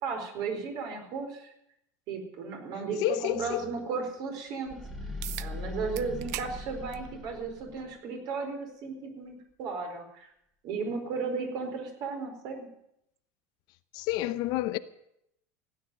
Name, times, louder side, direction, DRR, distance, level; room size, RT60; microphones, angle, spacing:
voice 1, 0.0-1.5 2.1-4.8 5.4-10.3 10.6-12.7, right 4 dB, 50° right, 4.6 m, -35 dB
voice 2, 3.0-3.7 13.9-14.8, left 16 dB, 50° left, 0.7 m, -29 dB
sound 1, 4.6-7.9, left 2 dB, ahead, 2.1 m, -40 dB
sound 2, 5.2-5.5 6.0-6.5 6.9-7.1 8.2-8.3 13.2-13.3, right 15 dB, 75° right, 0.7 m, -38 dB
16.0 x 9.7 x 9.2 m
supercardioid pair, 150°, 9 cm